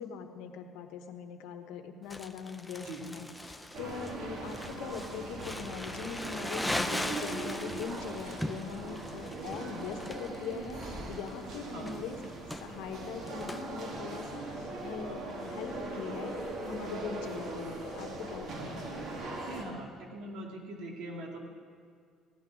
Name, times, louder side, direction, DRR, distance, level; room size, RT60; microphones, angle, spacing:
voice 1, 0.0-12.2 12.6-18.9, left 6 dB, 90° left, 6 dB, 1.2 m, -42 dB
Crumpling crinkling, 2.1-13.6, left 1 dB, 5° left, 0.5 m, -40 dB
sound 1, 3.7-19.6, right 2 dB, 50° right, 2.0 m, -40 dB
voice 2, 19.5-21.4, right 1 dB, 75° right, 0 dB, 2.5 m, -42 dB
16.0 x 6.3 x 10.0 m, 2.1 s
cardioid pair, 170°, 0 cm